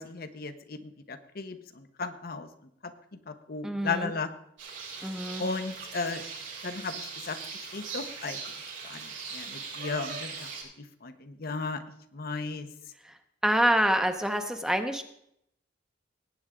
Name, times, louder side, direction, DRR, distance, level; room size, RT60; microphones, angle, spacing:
voice 1, 0.0-2.5 2.8-2.9 3.3-4.3 5.4-6.2 6.6-8.4 8.8-10.5 11.0-11.8 12.1-12.7, left 4 dB, 55° left, 8 dB, 0.9 m, -35 dB
voice 2, 3.6-4.1 5.0-5.4 13.4-15.0, equal, 5° right, 7 dB, 0.8 m, -26 dB
sound 1, 4.6-10.6, right 5 dB, 90° right, 5.4 m, -40 dB
18.5 x 8.7 x 3.7 m, 0.74 s
head